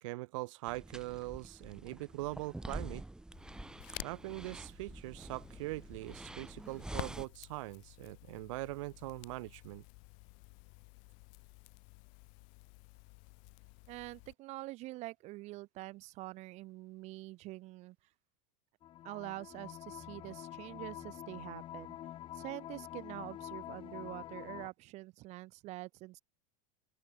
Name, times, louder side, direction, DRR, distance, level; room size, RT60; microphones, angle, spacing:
voice 1, 0.0-3.0 4.0-9.8, right 21 dB, 70° right, 2.3 m, -42 dB
sound 1, 0.7-7.3, right 2 dB, 5° right, 1.0 m, -47 dB
Crackle, 3.3-14.3, left 40 dB or more, 55° left, 1.7 m, -52 dB
voice 2, 13.9-18.0 19.0-22.0 22.3-26.2, right 19 dB, 45° right, 1.7 m, -46 dB
sound 2, 18.8-24.7, left 12 dB, 30° left, 1.0 m, -47 dB
open air
supercardioid pair, 150°, 17 cm